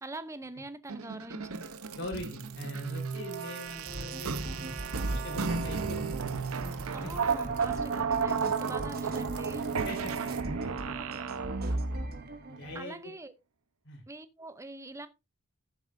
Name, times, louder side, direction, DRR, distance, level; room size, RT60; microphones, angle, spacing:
voice 1, 0.0-1.7 6.9-9.7 12.7-13.3 14.1-15.1, right 2 dB, 15° right, 0.6 m, -43 dB
sound 1, 0.9-12.1, right 5 dB, 75° right, 0.8 m, -33 dB
voice 2, 1.9-4.8 5.1-6.3 7.0-7.1 9.8-10.7 11.6-12.0 12.5-13.1 13.8-14.0, left 1 dB, 55° left, 4.0 m, -42 dB
sound 2, 3.8-12.8, right 2 dB, 45° right, 1.2 m, -40 dB
13.0 x 7.1 x 2.6 m
head